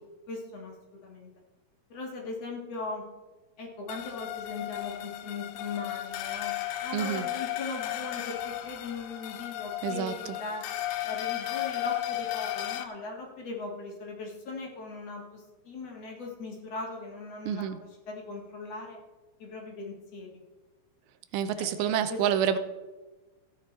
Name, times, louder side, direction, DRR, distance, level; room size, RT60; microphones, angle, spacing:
voice 1, 0.3-1.3 1.9-3.0 3.6-6.5 6.8-10.6 11.0-19.0 19.4-20.4 21.6-22.5, left 3 dB, 50° left, -1 dB, 2.3 m, -39 dB
sound 1, 3.9-12.8, left 14 dB, 80° left, 2.5 m, -34 dB
voice 2, 6.9-7.2 9.8-10.1 17.5-17.8 21.3-22.6, right 9 dB, 85° right, 11 dB, 2.6 m, -28 dB
15.5 x 9.4 x 4.2 m, 1.2 s
omnidirectional pair, 4.4 m